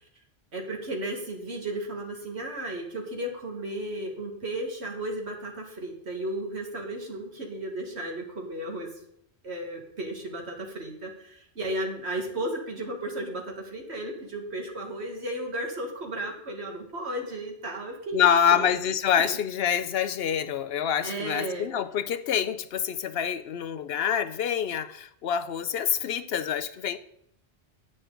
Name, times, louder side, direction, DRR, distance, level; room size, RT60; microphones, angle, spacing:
voice 1, 0.5-9.0 9.4-18.2 18.5-18.6 19.2-19.4 21.0-21.7, right 1 dB, 75° right, 2.0 m, -34 dB
voice 2, 18.1-27.0, left 8 dB, 70° left, 0.8 m, -26 dB
10.0 x 8.5 x 3.9 m
omnidirectional pair, 1.1 m